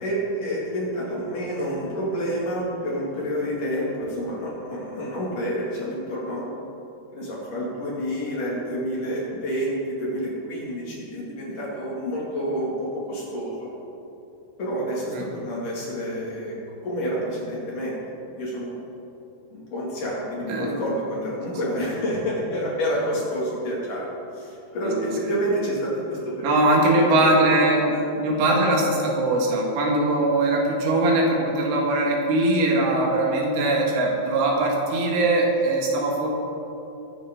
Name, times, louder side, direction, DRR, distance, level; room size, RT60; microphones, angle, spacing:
voice 1, 0.0-6.4 7.1-13.8 14.6-18.0 18.3-18.8 19.5-27.0 27.9-28.0 30.1-30.2, equal, 50° left, -6 dB, 3.4 m, -29 dB
voice 2, 26.4-27.9 28.2-36.3, right 2 dB, 85° right, -1 dB, 4.4 m, -21 dB
22.0 x 9.8 x 3.8 m, 2.9 s
omnidirectional pair, 5.5 m